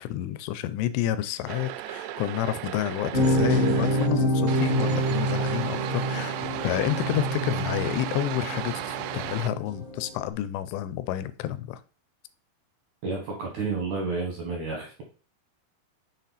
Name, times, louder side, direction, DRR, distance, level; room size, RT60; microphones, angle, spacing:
voice 1, 0.0-6.4 6.6-11.8, left 13 dB, 85° left, 2.7 m, -30 dB
sound 1, 1.5-4.1 4.5-9.5, right 12 dB, 90° right, 2.8 m, -35 dB
sound 2, 3.1-10.2, right 1 dB, 55° left, 0.5 m, -27 dB
voice 2, 13.0-15.1, right 4 dB, 75° right, 1.8 m, -31 dB
6.5 x 4.2 x 4.0 m
omnidirectional pair, 4.9 m